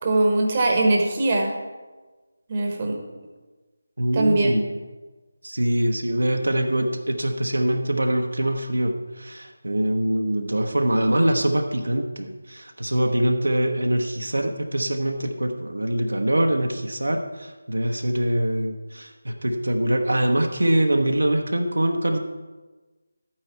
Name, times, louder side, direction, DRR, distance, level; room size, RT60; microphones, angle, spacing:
voice 1, 0.0-1.5 2.5-3.0 4.1-4.6, right 2 dB, 25° right, 2 dB, 1.2 m, -21 dB
voice 2, 4.0-4.7 5.4-22.2, right 1 dB, 70° right, 3 dB, 1.0 m, -23 dB
12.5 x 8.8 x 4.4 m, 1.3 s
figure-of-eight pair, 160°, 0 cm